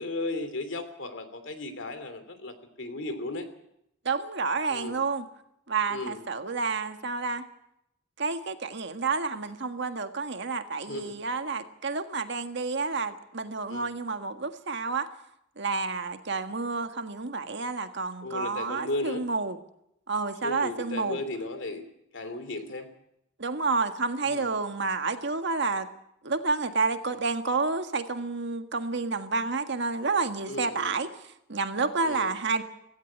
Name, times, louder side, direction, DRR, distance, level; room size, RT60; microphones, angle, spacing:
voice 1, 0.0-3.5 4.7-5.0 5.9-6.2 10.9-11.2 13.7-13.9 18.2-19.3 20.4-21.8 22.1-22.9 24.2-24.5 30.5-30.9 32.0-32.3, left 2 dB, 65° left, 9 dB, 2.9 m, -35 dB
voice 2, 4.0-5.2 5.7-7.4 8.2-15.1 15.6-19.6 20.1-21.2 23.4-25.9 26.2-31.1 31.5-32.6, right 4 dB, 60° right, 8 dB, 1.6 m, -29 dB
17.0 x 16.5 x 9.5 m, 0.78 s
head